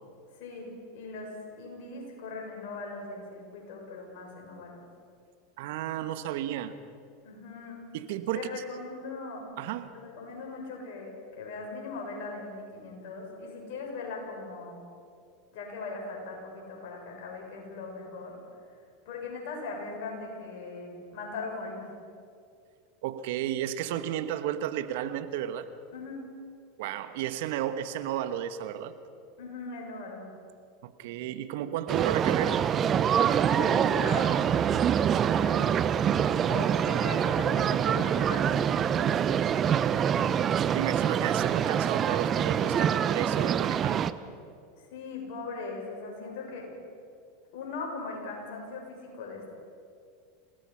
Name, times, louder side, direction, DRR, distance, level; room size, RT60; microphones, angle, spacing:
voice 1, 0.4-4.8 7.2-7.8 8.3-9.5 9.9-14.8 15.5-18.3 19.0-21.9 25.9-26.2 29.4-30.2 33.4-34.5 35.1-35.7 36.5-38.9 44.9-46.7 47.5-49.5, left 3 dB, 65° left, 0 dB, 6.8 m, -39 dB
voice 2, 5.6-6.7 7.9-8.5 9.6-9.9 23.0-25.7 26.8-28.9 30.8-32.7 40.2-40.4 40.7-44.1, right 11 dB, 65° right, 11 dB, 1.2 m, -33 dB
sound 1, 31.9-44.1, right 8 dB, 35° right, 0.8 m, -25 dB
27.0 x 18.0 x 5.7 m, 2.3 s
hypercardioid pair, 90°, 0 cm